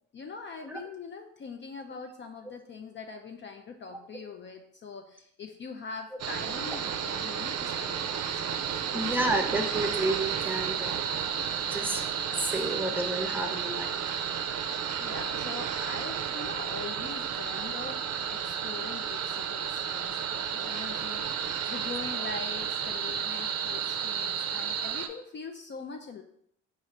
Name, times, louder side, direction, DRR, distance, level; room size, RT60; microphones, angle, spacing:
voice 1, 0.1-9.2 12.5-12.7 14.0-14.1 14.8-26.2, left 4 dB, 40° left, 5 dB, 0.4 m, -43 dB
sound 1, 6.2-25.1, right 8 dB, 55° right, 0.5 m, -32 dB
voice 2, 8.9-11.0 11.7-12.0 12.3-14.0, right 2 dB, 5° right, 3 dB, 0.7 m, -30 dB
4.8 x 2.5 x 4.1 m, 0.68 s
cardioid pair, 90°, 30 cm